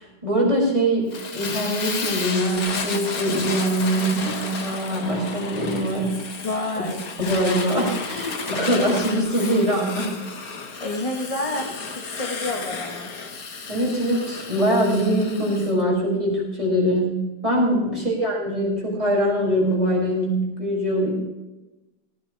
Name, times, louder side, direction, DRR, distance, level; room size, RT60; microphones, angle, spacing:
voice 1, 0.0-6.2 7.2-10.1 13.7-21.1, right 1 dB, 15° right, -4 dB, 6.4 m, -23 dB
Fire, 1.1-15.7, left 4 dB, 55° left, 1.9 m, -32 dB
voice 2, 6.4-7.0 10.8-13.1 17.7-18.1, left 2 dB, 20° left, 1 dB, 1.4 m, -29 dB
18.0 x 16.5 x 3.4 m, 1.0 s
omnidirectional pair, 1.9 m